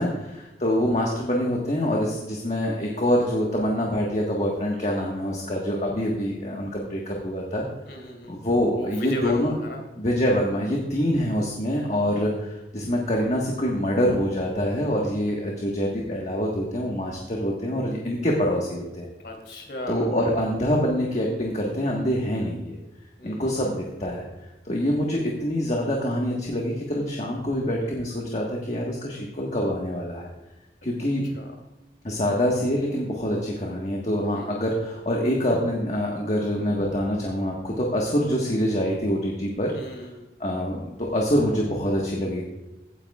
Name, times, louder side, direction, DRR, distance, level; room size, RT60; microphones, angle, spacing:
voice 1, 0.0-7.7 8.3-9.5 10.0-19.1 19.9-22.8 23.2-24.3 24.6-30.3 30.8-31.2 32.0-39.8 40.4-42.4, equal, 40° left, -1 dB, 1.5 m, -25 dB
voice 2, 7.9-8.4 8.7-9.8 19.2-20.1 23.2-23.6 31.2-31.5 34.3-34.7 39.7-40.3, left 1 dB, 60° left, 2 dB, 3.0 m, -35 dB
16.0 x 9.6 x 2.4 m, 1.0 s
head